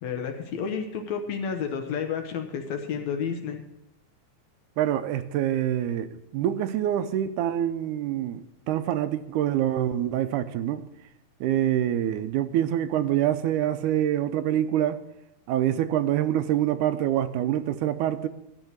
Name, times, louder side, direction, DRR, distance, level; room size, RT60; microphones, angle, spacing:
voice 1, 0.0-3.6, left 6 dB, 70° left, 2.1 m, -31 dB
voice 2, 4.8-10.9 11.4-15.0 15.5-18.3, right 11 dB, 85° right, 2.1 m, -26 dB
12.0 x 6.1 x 7.9 m
omnidirectional pair, 3.5 m